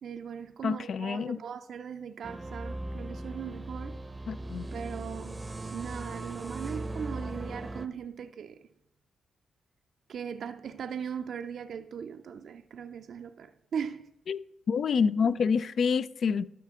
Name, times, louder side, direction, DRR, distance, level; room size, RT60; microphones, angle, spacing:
voice 1, 0.0-4.0 4.7-8.6 10.1-14.1, right 7 dB, 70° right, 0.4 m, -39 dB
voice 2, 0.6-1.4 4.3-4.7 14.3-14.4 14.7-16.5, left 6 dB, 65° left, 0.3 m, -27 dB
sound 1, 2.2-7.9, right 2 dB, 25° right, 0.6 m, -38 dB
12.5 x 5.7 x 3.6 m
supercardioid pair, 55°, 0 cm